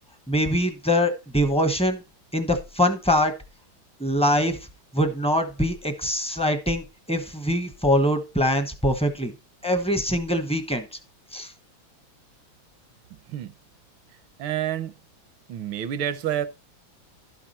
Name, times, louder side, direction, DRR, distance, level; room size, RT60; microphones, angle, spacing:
voice 1, 0.3-2.0 2.3-3.3 4.0-4.6 4.9-9.3 9.6-10.8 11.3-11.5, equal, 5° left, 0.5 m, -23 dB
voice 2, 13.1-13.5 14.4-14.9 15.5-16.5, right 10 dB, 80° right, 1.5 m, -28 dB
12.0 x 6.0 x 4.2 m
omnidirectional pair, 2.2 m